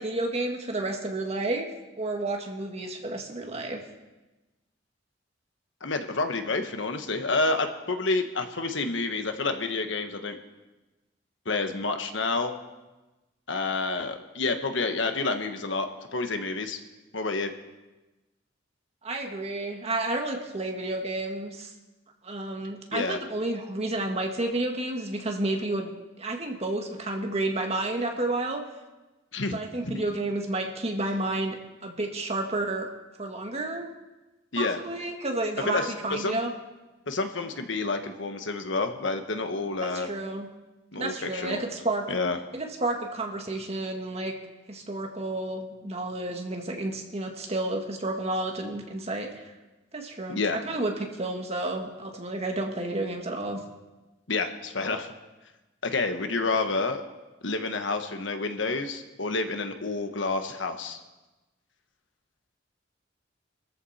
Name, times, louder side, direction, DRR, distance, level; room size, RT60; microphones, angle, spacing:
voice 1, 0.0-1.7 2.0-3.8 19.0-21.7 22.2-25.9 26.2-28.6 29.4-31.6 31.8-32.9 33.2-33.9 34.6-36.5 39.8-40.5 41.0-42.0 42.5-44.3 44.7-49.5 49.9-50.9 51.2-53.6, right 2 dB, 35° right, 2 dB, 1.9 m, -31 dB
voice 2, 5.8-10.4 11.4-12.5 13.5-16.8 17.1-17.5 22.9-23.2 29.3-29.6 29.8-30.0 34.5-34.8 35.7-35.8 36.2-36.4 37.1-40.1 40.9-41.6 42.1-42.4 50.3-50.6 54.3-55.1 55.8-57.0 57.4-61.0, left 3 dB, 80° left, 7 dB, 1.3 m, -29 dB
23.5 x 14.0 x 4.3 m, 1.1 s
head